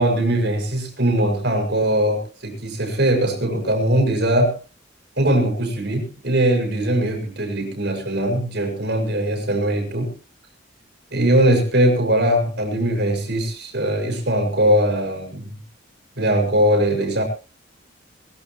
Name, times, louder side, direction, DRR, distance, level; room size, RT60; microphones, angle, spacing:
voice 1, 0.0-4.6 5.2-10.1 11.1-15.5 16.2-17.2, right 1 dB, 60° right, 3 dB, 6.3 m, -20 dB
22.5 x 15.0 x 3.1 m, 0.34 s
head